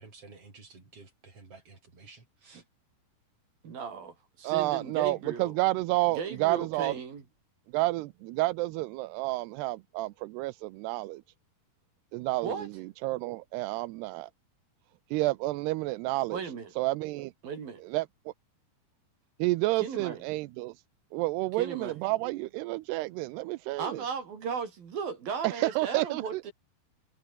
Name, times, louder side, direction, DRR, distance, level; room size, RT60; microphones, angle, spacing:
voice 1, 0.0-2.6, right 3 dB, 35° right, 6.9 m, -52 dB
voice 2, 3.6-5.6 6.2-7.2 12.4-12.7 16.3-16.7 17.4-17.8 19.8-20.2 21.6-22.0 23.8-26.5, right 6 dB, 65° right, 5.4 m, -36 dB
voice 3, 4.4-6.9 7.7-11.2 12.1-14.3 15.1-16.4 16.8-17.3 17.8-18.3 19.4-20.7 21.1-24.0 25.4-26.4, right 20 dB, 90° right, 2.8 m, -30 dB
omnidirectional pair, 4.6 m